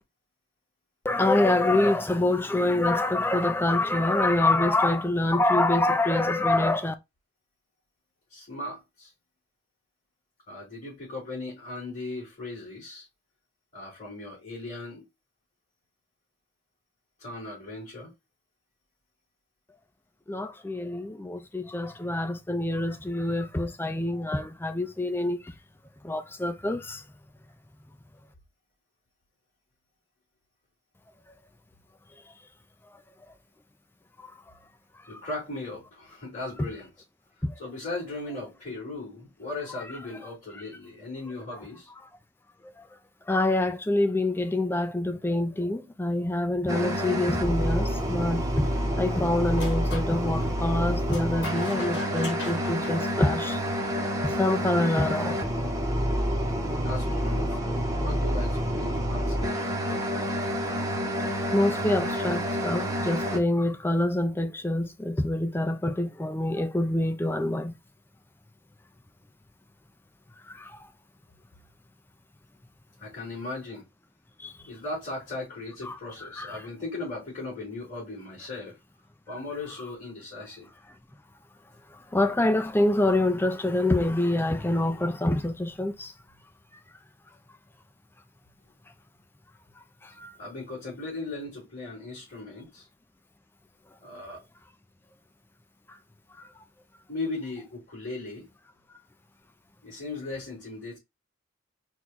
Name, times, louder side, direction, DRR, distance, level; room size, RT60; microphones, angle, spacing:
voice 1, 1.0-6.9 20.3-25.5 26.0-27.0 34.2-34.3 35.1-35.2 42.8-42.9 43.3-48.7 49.0-53.6 54.2-55.4 60.1-60.2 61.5-67.7 70.5-70.9 74.4-74.5 75.8-76.6 81.9-86.1 90.0-90.4 96.4-96.5, left 1 dB, 10° left, 0.4 m, -26 dB
voice 2, 8.3-9.1 10.5-13.1 13.7-15.0 17.2-18.1 35.1-36.9 37.6-41.9 56.8-60.4 73.0-73.8 74.7-78.8 79.3-80.7 90.4-92.9 94.0-94.4 97.1-98.5 99.8-101.0, left 2 dB, 35° left, 2.8 m, -37 dB
sound 1, 46.7-63.4, equal, 15° right, 0.8 m, -28 dB
sound 2, 49.5-50.1 51.1-53.8, left 2 dB, 55° left, 1.9 m, -39 dB
4.5 x 2.3 x 4.0 m
head